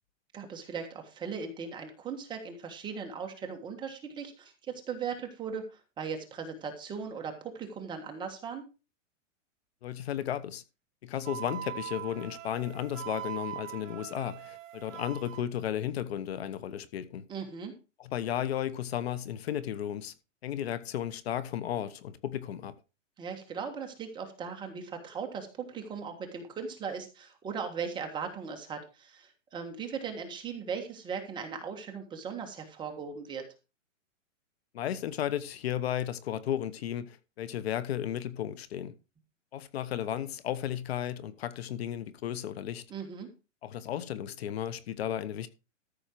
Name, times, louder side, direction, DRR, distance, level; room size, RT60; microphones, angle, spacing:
voice 1, 0.3-8.6 17.3-17.7 23.2-33.4 42.9-43.3, right 6 dB, 10° right, 1.5 m, -38 dB
voice 2, 9.8-10.6 11.0-17.2 18.0-20.1 20.4-22.7 34.7-38.9 39.5-42.8 43.6-45.5, left 11 dB, 55° left, 1.0 m, -34 dB
Wind instrument woodwind instrument, 11.2-15.4, right 12 dB, 85° right, 1.0 m, -41 dB
13.5 x 6.4 x 4.5 m
supercardioid pair, 170°, 38 cm